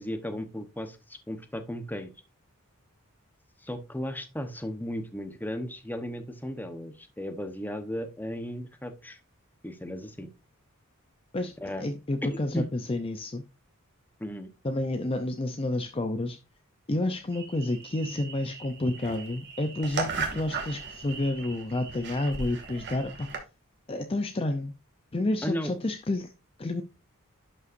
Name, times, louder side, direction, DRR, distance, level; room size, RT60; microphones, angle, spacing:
voice 1, 0.0-2.1 3.6-9.2 9.6-10.3 11.6-11.9 12.2-12.7 14.2-14.5 25.4-25.7, equal, 10° left, 0.9 m, -35 dB
voice 2, 11.8-13.4 14.6-16.4 16.9-23.4 23.9-24.7 25.1-26.3 26.6-26.8, left 2 dB, 25° left, 0.5 m, -30 dB
sound 1, 17.3-23.4, right 4 dB, 55° right, 2.0 m, -37 dB
11.0 x 5.5 x 2.6 m
head